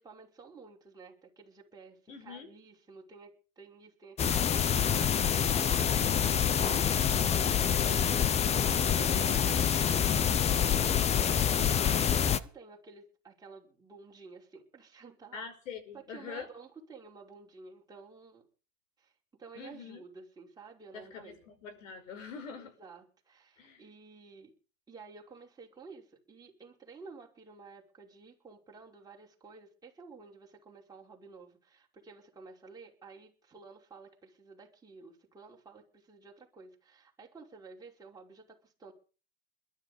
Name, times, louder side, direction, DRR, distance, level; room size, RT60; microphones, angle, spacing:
voice 1, 0.0-11.9 12.3-15.5 15.9-18.5 19.0-19.1 19.4-21.4 22.6-24.5 24.9-38.9, right 4 dB, 10° right, -2 dB, 5.5 m, -52 dB
voice 2, 2.1-2.5 4.3-4.4 15.3-16.5 19.6-20.0 20.9-22.7 23.6-23.8, left 6 dB, 75° left, 10 dB, 5.4 m, -44 dB
sound 1, 4.2-12.4, left 8 dB, 15° left, 0.8 m, -26 dB
21.5 x 12.0 x 5.3 m, 0.38 s
supercardioid pair, 140°, 39 cm